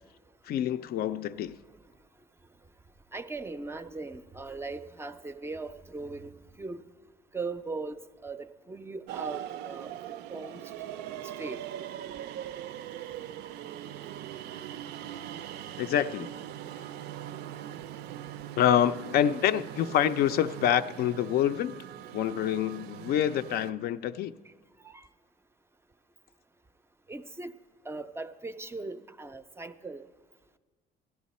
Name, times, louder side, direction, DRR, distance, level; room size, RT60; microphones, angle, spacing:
voice 1, 0.5-1.6 15.8-16.3 18.6-21.8 22.1-24.3, left 10 dB, 65° left, 12 dB, 0.4 m, -26 dB
voice 2, 3.1-6.3 6.6-6.8 7.3-8.0 8.2-9.9 10.3-10.6 11.4-11.6 24.8-25.0 27.1-27.5 27.9-30.1, right 3 dB, 15° right, 11 dB, 0.4 m, -39 dB
sound 1, 9.1-23.7, right 11 dB, 80° right, 0.4 m, -41 dB
15.0 x 11.0 x 4.1 m, 1.4 s
cardioid pair, 110°, 17 cm